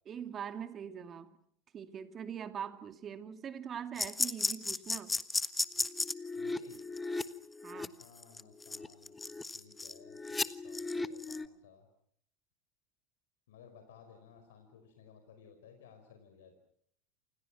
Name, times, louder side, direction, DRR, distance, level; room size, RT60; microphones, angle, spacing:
voice 1, 0.1-1.3 1.7-5.1 7.6-7.9, right 8 dB, 35° right, 9 dB, 2.5 m, -42 dB
sound 1, 4.0-11.5, left 3 dB, 15° left, 1.4 m, -35 dB
voice 2, 6.3-6.8 7.7-11.9 13.5-16.6, left 6 dB, 75° left, 6 dB, 5.1 m, -58 dB
28.5 x 28.5 x 6.1 m, 0.66 s
hypercardioid pair, 85°, 0 cm